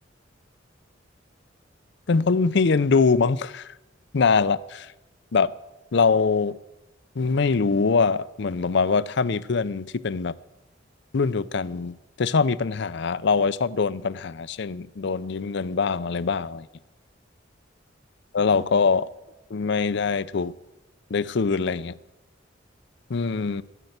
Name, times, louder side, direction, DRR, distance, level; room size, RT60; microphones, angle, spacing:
voice 1, 2.1-3.7 4.1-4.9 5.3-5.5 5.9-6.6 7.2-10.3 11.1-16.7 18.3-19.1 19.5-20.5 21.1-21.9 23.1-23.6, left 4 dB, 65° left, 0.5 m, -23 dB
14.5 x 11.0 x 8.0 m
head